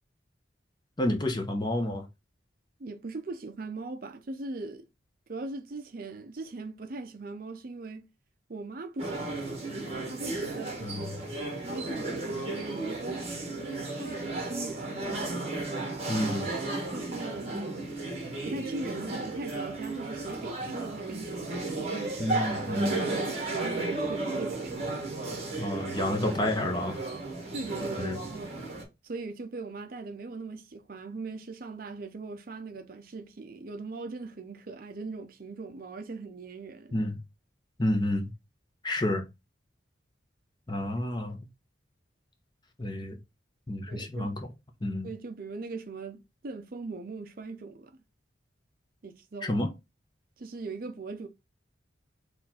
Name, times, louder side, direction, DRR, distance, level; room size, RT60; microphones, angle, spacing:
voice 1, 1.0-2.1 10.8-11.2 16.1-16.5 22.2-22.9 25.6-27.1 28.0-28.2 36.9-37.2 37.8-38.3 38.8-39.3 40.7-41.4 42.8-43.2 43.7-44.4 44.8-45.1 49.4-49.7, left 1 dB, 20° left, 0.7 m, -30 dB
voice 2, 2.8-4.9 5.3-8.1 8.5-9.7 10.1-11.1 11.6-13.3 13.7-15.1 16.9-17.6 18.4-25.2 27.5-28.6 29.0-37.0 43.9-44.3 45.0-47.9 49.0-49.6 50.4-51.3, right 3 dB, 50° right, 0.5 m, -40 dB
sound 1, 9.0-28.8, right 2 dB, 30° right, 1.5 m, -34 dB
4.2 x 2.4 x 4.2 m
head